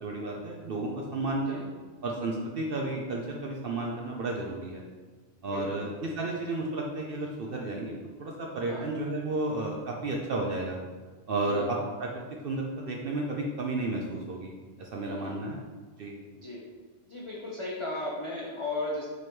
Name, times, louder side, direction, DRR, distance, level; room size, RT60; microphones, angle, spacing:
voice 1, 0.0-1.6 2.0-4.8 5.4-10.8 11.3-14.5 14.8-15.6 16.0-16.1, right 2 dB, 60° right, -1 dB, 0.8 m, -32 dB
voice 2, 5.4-5.9 8.7-8.9 11.4-11.6 15.0-15.6 16.4-16.7 17.1-19.1, left 2 dB, 30° left, -4 dB, 0.7 m, -36 dB
6.2 x 3.0 x 5.2 m, 1.4 s
omnidirectional pair, 1.2 m